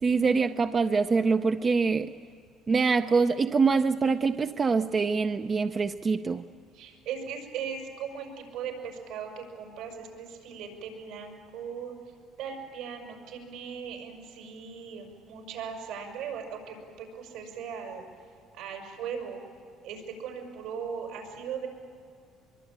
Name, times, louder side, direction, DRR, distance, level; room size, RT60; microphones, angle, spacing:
voice 1, 0.0-2.1 2.7-6.4, right 4 dB, 25° right, 9 dB, 0.5 m, -24 dB
voice 2, 6.7-12.0 12.4-18.0 18.5-19.4 19.8-21.7, right 7 dB, 80° right, 2 dB, 6.3 m, -38 dB
24.0 x 23.5 x 8.9 m, 2.3 s
cardioid pair, 140°, 0 cm